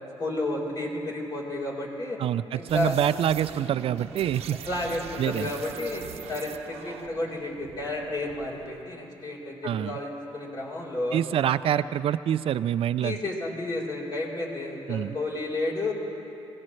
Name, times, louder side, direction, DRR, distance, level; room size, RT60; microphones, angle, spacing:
voice 1, 0.2-2.2 2.5-2.9 4.6-11.2 13.0-15.9, left 2 dB, 45° left, -3 dB, 4.3 m, -31 dB
voice 2, 2.2-4.6 5.2-5.5 9.6-10.0 11.1-13.2 14.9-15.2, right 10 dB, 65° right, 14 dB, 0.4 m, -26 dB
sound 1, 2.7-8.9, right 8 dB, 85° right, 0.8 m, -42 dB
25.0 x 17.0 x 3.2 m, 2.9 s
cardioid pair, 85°, 10 cm